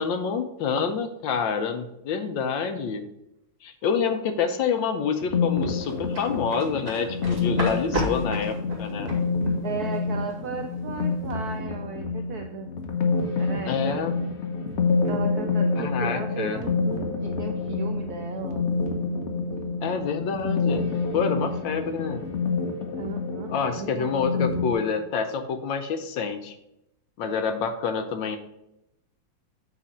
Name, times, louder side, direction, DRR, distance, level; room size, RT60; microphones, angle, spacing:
voice 1, 0.0-3.0 3.6-9.1 13.6-14.1 15.8-16.6 19.8-22.2 23.5-26.5 27.2-28.4, left 6 dB, 70° left, 8 dB, 1.3 m, -27 dB
sound 1, 5.2-24.7, left 4 dB, 50° left, 0.8 m, -28 dB
sound 2, 5.8-11.0 11.3-11.5, right 2 dB, 30° right, 2.4 m, -33 dB
voice 2, 9.6-12.7 13.4-14.0 15.0-18.7 23.0-24.2, right 5 dB, 75° right, 5 dB, 0.9 m, -36 dB
8.4 x 3.9 x 5.1 m, 0.86 s
omnidirectional pair, 2.3 m